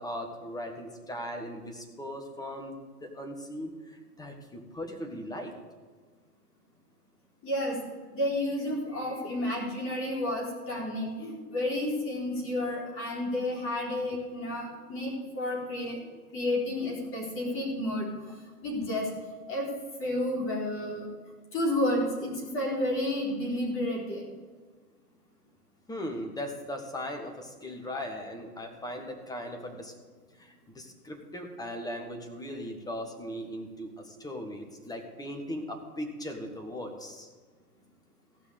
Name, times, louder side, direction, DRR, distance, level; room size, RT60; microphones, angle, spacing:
voice 1, 0.0-3.7 4.2-5.5 8.9-9.2 25.9-29.9 30.4-37.3, equal, 10° left, 4 dB, 1.6 m, -38 dB
voice 2, 7.4-7.8 8.1-18.1 18.6-19.1 19.5-19.7 20.0-21.1 21.5-24.2, left 1 dB, 25° left, -1 dB, 4.2 m, -31 dB
15.0 x 5.9 x 8.1 m, 1.4 s
figure-of-eight pair, 105°, 46 cm